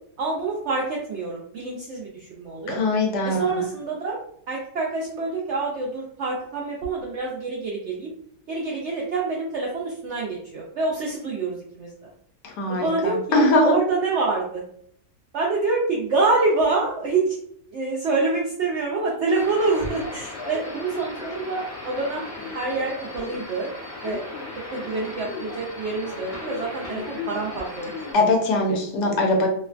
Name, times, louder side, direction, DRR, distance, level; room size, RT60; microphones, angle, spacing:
voice 1, 0.2-2.8 3.2-4.2 4.5-8.1 8.5-12.1 12.7-14.6 15.3-17.4 17.7-22.3 22.5-23.7 24.0-24.2 24.7-28.2, right 3 dB, 80° right, -3 dB, 0.6 m, -26 dB
voice 2, 2.7-3.6 12.4-13.8 28.1-29.5, left 2 dB, 85° left, 2 dB, 1.3 m, -21 dB
sound 1, 19.3-28.1, left 3 dB, 45° left, 1.0 m, -36 dB
3.0 x 2.1 x 2.4 m, 0.68 s
omnidirectional pair, 1.8 m